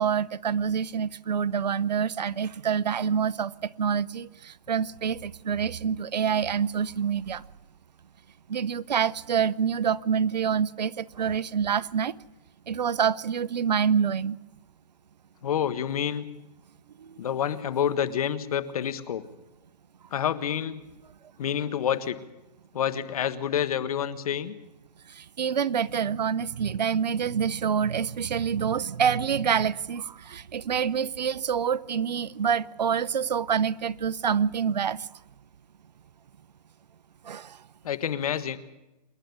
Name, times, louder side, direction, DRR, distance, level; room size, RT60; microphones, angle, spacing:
voice 1, 0.0-3.5 3.8-7.4 8.5-12.1 12.7-14.4 25.2-35.0 37.3-37.6, right 7 dB, 75° right, 0.7 m, -26 dB
voice 2, 15.4-16.3 17.2-19.2 20.1-20.8 21.4-22.2 22.7-24.5 37.8-38.6, left 9 dB, 60° left, 1.5 m, -28 dB
27.0 x 11.5 x 8.6 m
hypercardioid pair, 135°, 21 cm